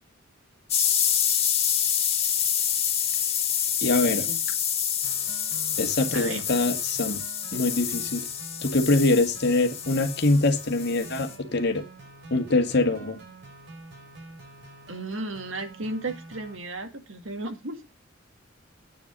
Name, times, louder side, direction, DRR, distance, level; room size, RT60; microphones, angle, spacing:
sound 1, 0.7-11.3, left 9 dB, 30° left, 2.3 m, -27 dB
voice 1, 3.8-4.3 5.8-7.2 7.5-8.2 8.6-11.8 12.3-13.2, left 2 dB, 60° left, 7 dB, 2.0 m, -24 dB
sound 2, 5.0-16.6, right 2 dB, 60° right, 4.7 m, -47 dB
voice 2, 14.9-17.8, right 2 dB, 85° right, 7 dB, 2.1 m, -34 dB
9.3 x 6.0 x 6.7 m, 0.26 s
head